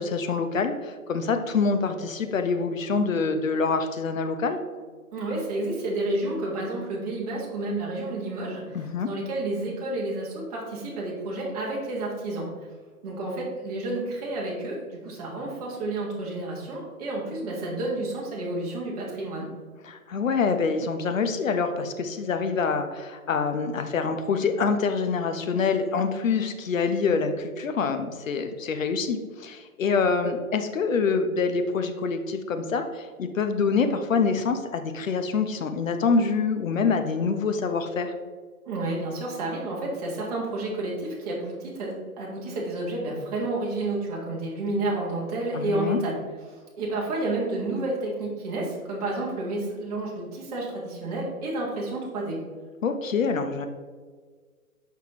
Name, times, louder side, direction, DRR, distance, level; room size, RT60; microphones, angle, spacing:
voice 1, 0.0-4.6 8.7-9.1 19.8-38.1 45.5-46.0 52.8-53.7, left 5 dB, 60° left, 7 dB, 0.8 m, -26 dB
voice 2, 5.1-8.8 9.0-12.5 13.0-19.5 38.6-46.2 46.5-52.4, right 2 dB, 25° right, -4 dB, 1.5 m, -30 dB
6.0 x 5.7 x 3.0 m, 1.5 s
hypercardioid pair, 150°, 44 cm